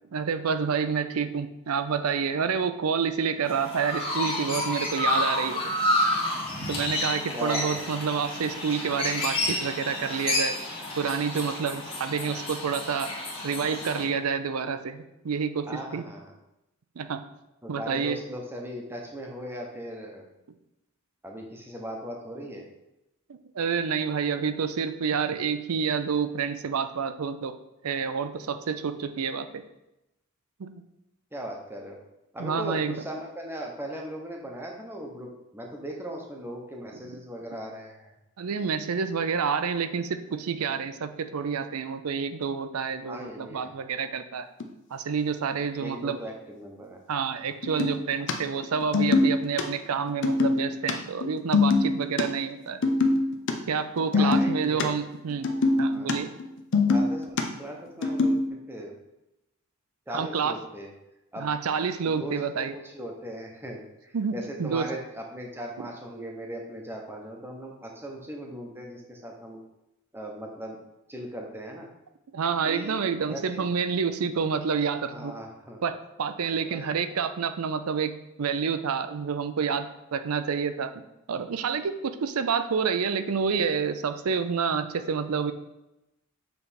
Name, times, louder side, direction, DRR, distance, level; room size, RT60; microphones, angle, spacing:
voice 1, 0.1-5.7 6.7-10.6 11.0-13.1 13.4-16.0 17.0-17.2 17.7-18.2 23.5-27.6 27.8-29.6 30.6-30.7 32.4-32.9 38.4-44.5 44.9-46.2 47.1-52.8 53.7-55.5 55.8-56.3 60.1-60.6 61.4-62.7 64.1-64.3 64.6-64.9 65.8-65.9 72.3-75.3 75.8-78.1 78.4-79.9 80.1-80.9 81.3-85.5, right 6 dB, 75° right, 10 dB, 0.5 m, -28 dB
Chirp tweet, 3.4-14.0, left 1 dB, 25° left, 1.4 m, -30 dB
voice 2, 7.3-7.8 12.3-12.4 15.7-16.3 17.6-20.2 21.2-22.6 31.3-32.0 32.3-35.3 35.5-38.1 43.0-43.7 45.8-47.0 54.1-54.8 55.7-56.1 56.9-58.9 60.1-60.9 61.3-61.5 62.0-63.8 64.3-69.6 70.1-70.8 71.1-71.9 72.6-73.7 75.1-75.8 76.6-76.8, equal, 10° right, 0 dB, 0.9 m, -38 dB
sound 1, 44.6-44.7 47.6-48.3 48.6-49.6 49.9-50.9 51.2-52.2 52.7-53.5 53.8-54.8 55.1-56.1 56.4-57.4 58.0-58.4, left 3 dB, 55° left, 0.6 m, -23 dB
6.9 x 3.3 x 4.2 m, 0.92 s
head